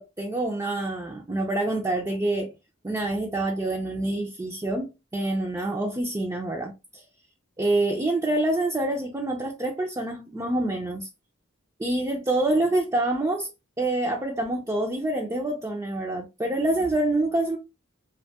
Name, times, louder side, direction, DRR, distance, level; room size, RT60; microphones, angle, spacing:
voice 1, 0.0-2.5 2.8-7.0 7.6-11.1 11.8-13.5 13.8-17.6, right 2 dB, 15° right, 0.4 m, -26 dB
2.5 x 2.2 x 2.7 m
head